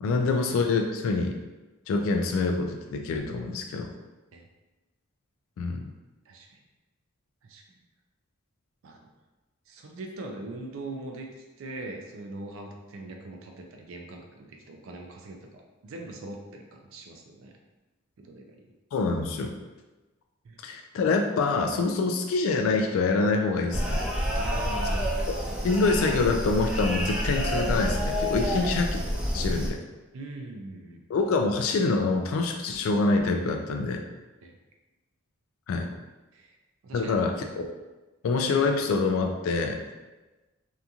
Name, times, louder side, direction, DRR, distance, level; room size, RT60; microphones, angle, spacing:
voice 1, 0.0-1.3 1.9-3.9 5.6-5.9 18.9-19.5 20.6-24.0 25.6-28.9 29.3-29.8 31.1-34.0 35.7-35.9 36.9-37.7 38.2-39.8, left 3 dB, 80° left, 4 dB, 0.3 m, -26 dB
voice 2, 6.3-6.6 7.4-7.7 8.8-9.1 9.7-17.6 18.2-18.7 20.4-20.8 24.3-25.1 28.4-28.7 30.1-31.0 34.4-34.6 36.3-36.6 36.8-37.3, right 2 dB, 80° right, 2 dB, 0.4 m, -41 dB
sound 1, 23.7-29.7, equal, 5° right, 0.3 m, -28 dB
2.8 x 2.5 x 2.3 m, 1.2 s
head